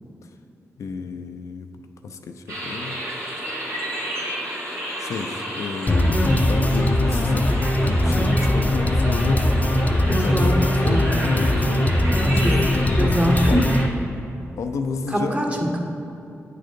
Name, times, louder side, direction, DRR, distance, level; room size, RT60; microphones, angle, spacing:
voice 1, 0.8-1.7 2.0-3.0 5.0-7.5 7.8-9.5 10.0-12.0 12.3-13.1 13.5-13.8 14.6-15.4, left 4 dB, 80° left, 6 dB, 0.4 m, -31 dB
sound 1, 2.5-13.8, equal, 75° right, 1.6 m, -32 dB
sound 2, 5.9-13.9, left 1 dB, 30° left, 0.5 m, -20 dB
voice 2, 10.3-11.5 12.2-12.5 13.0-13.6 15.1-15.8, equal, 25° right, 0 dB, 1.2 m, -24 dB
8.3 x 3.8 x 5.1 m, 2.9 s
cardioid pair, 60°, 5 cm